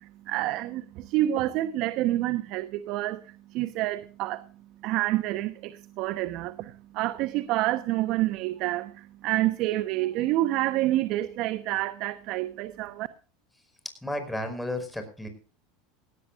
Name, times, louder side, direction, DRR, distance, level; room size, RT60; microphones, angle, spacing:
voice 1, 0.3-3.3 3.5-4.5 4.8-13.1, right 15 dB, 55° right, 1.0 m, -28 dB
voice 2, 14.0-15.3, left 1 dB, 5° left, 5.3 m, -33 dB
18.5 x 17.0 x 2.5 m
supercardioid pair, 105°, 0 cm